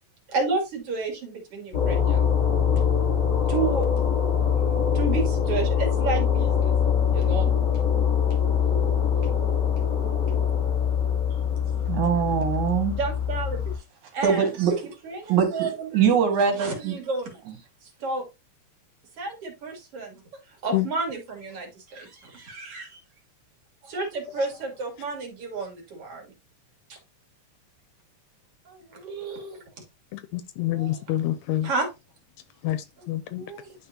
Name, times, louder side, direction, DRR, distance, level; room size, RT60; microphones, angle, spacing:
voice 1, 0.3-2.3 3.5-3.9 4.4-6.8 7.1-7.5 12.9-13.6 14.1-14.6 15.0-16.1 16.4-17.4 17.8-18.3 19.2-23.0 23.8-26.3 26.9-27.0 28.6-29.6 30.7-31.2 31.6-31.9 33.0-33.7, right 4 dB, 55° right, 3.1 m, -32 dB
sound 1, 1.7-13.8, left 7 dB, 40° left, 1.4 m, -23 dB
voice 2, 11.9-12.9 14.2-14.8 15.3-17.0, right 7 dB, 80° right, 3.0 m, -23 dB
voice 3, 30.1-31.7 32.6-33.5, left 14 dB, 80° left, 1.7 m, -27 dB
11.0 x 3.8 x 2.8 m
omnidirectional pair, 3.4 m